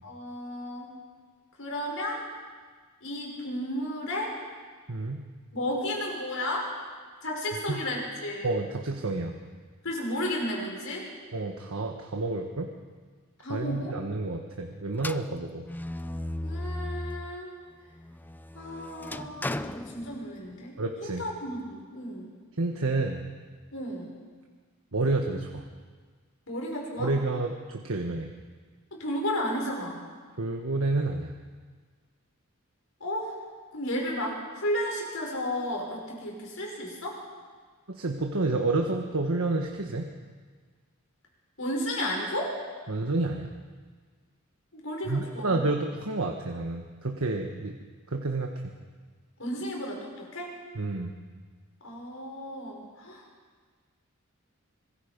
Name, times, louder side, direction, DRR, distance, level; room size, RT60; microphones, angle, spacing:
voice 1, 0.0-0.9 1.6-2.2 3.0-4.3 5.5-6.7 7.2-8.5 9.8-11.1 13.4-14.0 16.4-17.5 18.5-20.7 21.0-22.3 23.7-24.1 26.5-27.1 28.9-30.0 33.0-33.4 33.7-37.2 41.6-42.6 44.7-45.6 49.4-50.5 51.8-53.2, left 1 dB, 70° left, -1 dB, 6.0 m, -33 dB
voice 2, 4.9-5.2 7.7-7.8 8.4-9.4 11.3-12.7 13.5-15.7 20.8-21.2 22.6-23.2 24.9-25.6 27.0-28.3 30.4-31.3 37.9-40.1 42.9-43.5 45.1-47.8 48.1-48.5 50.7-51.2, right 2 dB, 80° right, 3 dB, 1.4 m, -29 dB
sound 1, 15.0-17.4 17.8-20.7, left 1 dB, 10° left, 0.5 m, -36 dB
25.5 x 21.5 x 5.3 m, 1.5 s
head